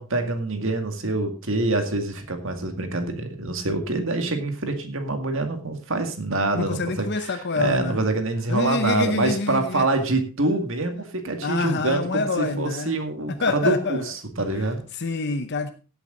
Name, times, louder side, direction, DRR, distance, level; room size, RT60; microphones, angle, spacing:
voice 1, 0.0-14.8, right 2 dB, 60° right, 6 dB, 2.1 m, -26 dB
voice 2, 6.5-8.0 8.5-9.9 11.4-12.9 13.3-14.1 14.9-15.7, left 3 dB, 50° left, 9 dB, 0.8 m, -26 dB
16.0 x 8.1 x 3.9 m, 0.35 s
head